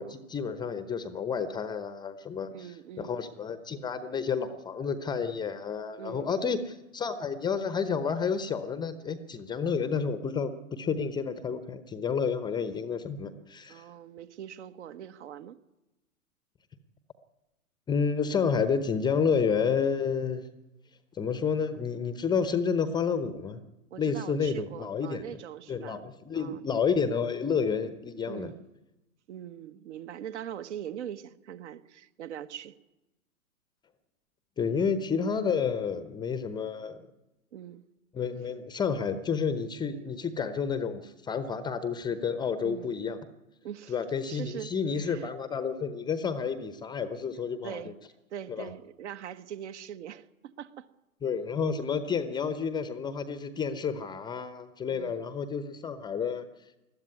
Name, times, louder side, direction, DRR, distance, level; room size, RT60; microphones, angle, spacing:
voice 1, 0.0-2.5 3.0-13.8 17.9-20.4 21.1-23.6 24.0-25.4 25.7-28.5 34.6-37.0 38.1-43.2 43.9-47.9 48.5-48.7 51.2-56.5, left 6 dB, 10° left, 12 dB, 0.8 m, -30 dB
voice 2, 2.5-3.2 6.0-6.6 13.7-15.6 23.9-26.7 28.2-28.6 29.3-32.7 34.7-35.0 37.5-37.8 42.6-42.9 43.6-44.0 44.3-44.7 45.0-45.3 47.6-48.0 48.3-50.9 54.9-55.3, right 10 dB, 50° right, 13 dB, 1.4 m, -42 dB
21.0 x 13.5 x 9.7 m, 0.97 s
figure-of-eight pair, 120°, 43 cm